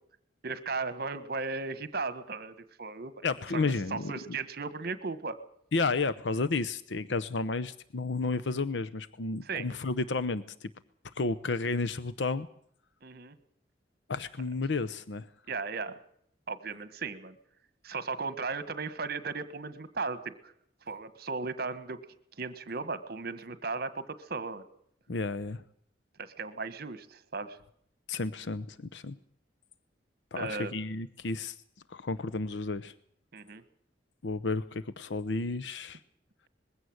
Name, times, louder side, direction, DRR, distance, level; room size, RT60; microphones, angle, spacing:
voice 1, 0.4-3.2 3.5-5.4 9.4-9.7 13.0-13.4 15.5-16.0 16.5-17.4 17.8-20.5 20.9-22.0 22.4-24.6 26.2-27.6 30.3-30.7 33.3-33.6, right 4 dB, 60° right, 13 dB, 1.5 m, -36 dB
voice 2, 3.2-4.1 5.7-10.7 11.1-12.5 14.1-15.3 25.1-25.6 28.1-29.2 30.3-31.6 31.9-32.9 34.2-36.0, left 3 dB, 80° left, 12 dB, 0.8 m, -32 dB
21.0 x 16.0 x 7.9 m, 0.67 s
head